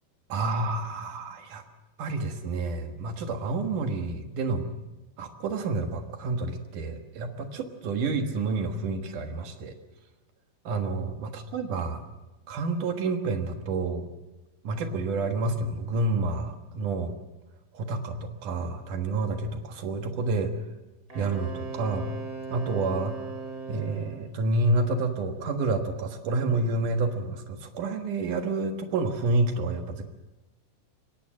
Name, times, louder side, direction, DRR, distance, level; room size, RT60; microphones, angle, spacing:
voice 1, 0.3-1.6 2.0-4.7 5.2-9.7 10.6-12.0 12.5-14.1 14.6-17.1 17.7-20.6 21.1-22.1 22.5-23.2 23.7-30.0, right 3 dB, 60° right, 5 dB, 2.6 m, -29 dB
Wind instrument woodwind instrument, 21.1-24.2, right 4 dB, 20° right, 4.7 m, -38 dB
23.5 x 18.0 x 7.6 m, 1.1 s
omnidirectional pair, 5.0 m